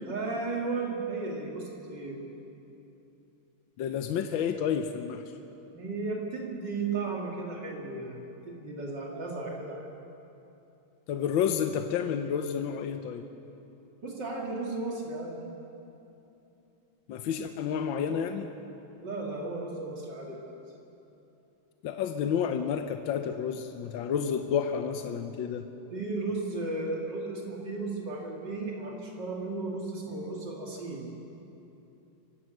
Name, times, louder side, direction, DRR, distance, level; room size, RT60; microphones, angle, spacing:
voice 1, 0.1-2.2 5.7-9.9 14.0-15.4 19.0-20.6 25.9-31.1, right 3 dB, 60° right, -1 dB, 3.3 m, -35 dB
voice 2, 3.8-5.2 11.1-13.2 17.1-18.5 21.8-25.7, left 7 dB, 80° left, 7 dB, 1.6 m, -30 dB
25.0 x 16.0 x 6.6 m, 2.9 s
omnidirectional pair, 2.1 m